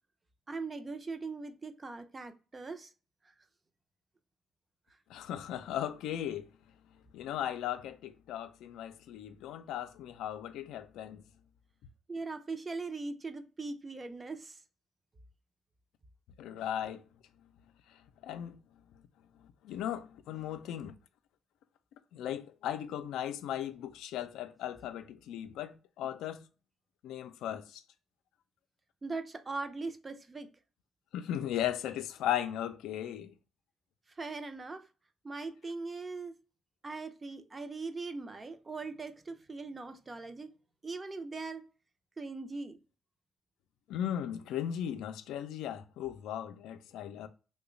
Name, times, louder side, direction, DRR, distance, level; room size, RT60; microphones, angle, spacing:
voice 1, 0.5-2.9 3.2-3.3 12.1-14.6 29.0-30.5 34.1-34.9 35.2-36.4 36.8-40.5 40.8-41.6 42.2-42.8, right 3 dB, 30° right, 0.5 m, -40 dB
voice 2, 5.1-6.5 7.1-11.2 16.4-17.0 18.2-18.6 19.6-20.9 22.1-26.4 27.0-27.8 31.1-33.3 43.9-47.3, left 10 dB, 85° left, 0.3 m, -37 dB
3.0 x 2.1 x 3.7 m
cardioid pair, 90°, 0 cm